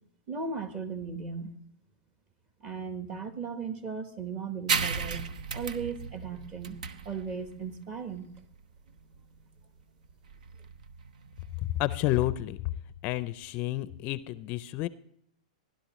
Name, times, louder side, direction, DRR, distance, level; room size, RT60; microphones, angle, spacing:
voice 1, 0.3-1.5 2.6-5.3 5.5-6.8 7.0-8.3, right 5 dB, 25° right, 9 dB, 1.3 m, -36 dB
sound 1, 4.7-11.8, right 6 dB, 80° right, 0.8 m, -35 dB
voice 2, 11.8-12.7 13.0-14.9, left 15 dB, 35° left, 15 dB, 0.4 m, -30 dB
16.0 x 11.5 x 3.0 m, 0.70 s
hypercardioid pair, 140°, 4 cm